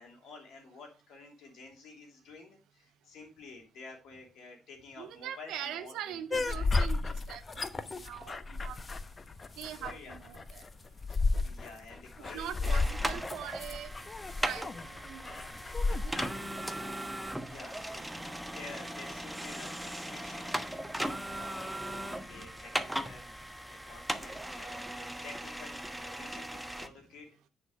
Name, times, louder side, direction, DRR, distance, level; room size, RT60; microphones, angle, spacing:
voice 1, 0.0-6.8 9.8-10.3 11.4-13.0 16.4-16.5 17.3-18.1 18.3-27.3, left 3 dB, 65° left, 2 dB, 3.0 m, -51 dB
voice 2, 5.0-7.4 8.0-8.8 9.6-10.6 12.3-13.9 14.4-15.5 15.9-16.1 21.3-21.4, right 10 dB, 70° right, 10 dB, 0.6 m, -42 dB
sound 1, 6.3-16.3, left 3 dB, 35° left, 0.9 m, -33 dB
sound 2, 12.6-26.9, right 1 dB, 5° right, 1.1 m, -38 dB
9.8 x 5.0 x 4.7 m, 0.34 s
hypercardioid pair, 45°, 0 cm